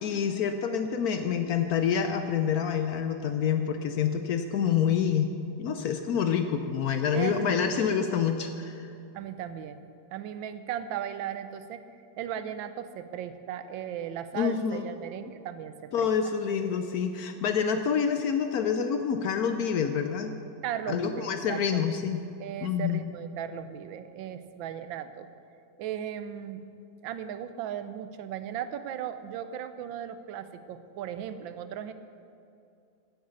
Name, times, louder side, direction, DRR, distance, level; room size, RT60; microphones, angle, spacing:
voice 1, 0.0-5.3 5.6-8.8 14.3-14.9 15.9-20.3 20.9-22.2 22.6-23.0, left 7 dB, 65° left, 7 dB, 0.9 m, -27 dB
voice 2, 7.1-7.7 9.1-9.8 10.1-11.8 12.2-16.1 20.6-22.0 22.4-25.3 25.8-26.6 27.0-31.9, right 9 dB, 90° right, 11 dB, 1.4 m, -37 dB
9.6 x 8.2 x 8.1 m, 2.5 s
omnidirectional pair, 2.0 m